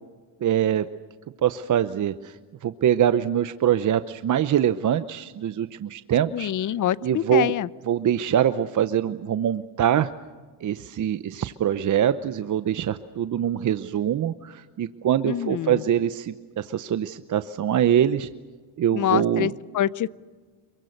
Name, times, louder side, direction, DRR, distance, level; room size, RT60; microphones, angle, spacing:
voice 1, 0.4-0.9 1.4-2.4 2.6-6.5 7.0-7.5 7.9-10.1 10.6-18.3 18.8-19.5, right 10 dB, 40° right, 11 dB, 0.8 m, -23 dB
voice 2, 6.3-7.7 15.3-15.8 18.9-20.1, left 11 dB, 40° left, 19 dB, 0.7 m, -25 dB
27.5 x 23.0 x 6.6 m, 1.4 s
cardioid pair, 115°, 48 cm